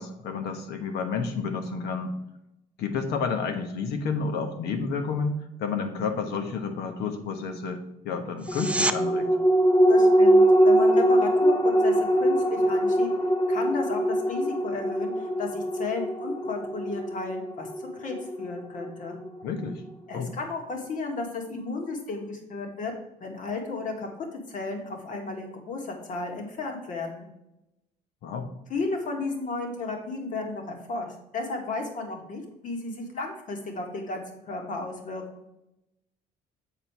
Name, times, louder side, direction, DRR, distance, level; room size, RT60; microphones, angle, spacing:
voice 1, 0.0-2.1 2.8-9.3 19.4-19.8 20.1-20.3 28.2-28.5, left 5 dB, 80° left, 6 dB, 1.2 m, -30 dB
sound 1, 8.4-9.0 20.3-20.4, right 2 dB, 5° right, 0.4 m, -27 dB
sound 2, 8.5-19.3 19.7-19.8, equal, 30° left, 1.1 m, -22 dB
voice 2, 9.9-13.1 13.5-19.2 20.1-22.9 23.2-27.3 28.7-35.4, left 3 dB, 50° left, 2 dB, 1.9 m, -34 dB
7.5 x 4.4 x 4.7 m, 0.88 s
cardioid pair, 110°, 17 cm